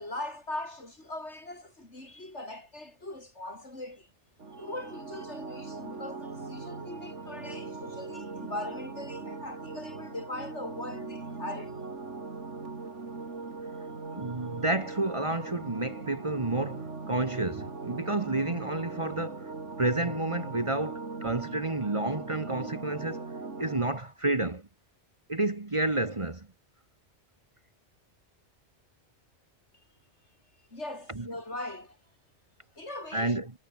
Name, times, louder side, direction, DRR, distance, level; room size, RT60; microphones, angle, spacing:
voice 1, 0.0-4.1 4.6-11.8 30.7-32.0 32.8-33.5, left 2 dB, 75° left, 7.4 m, -40 dB
sound 1, 4.4-23.8, right 4 dB, 90° right, 3.0 m, -40 dB
voice 2, 14.1-23.3 23.6-24.7 25.3-26.5 31.1-31.3 33.1-33.5, right 2 dB, 25° right, 1.4 m, -30 dB
omnidirectional pair, 1.2 m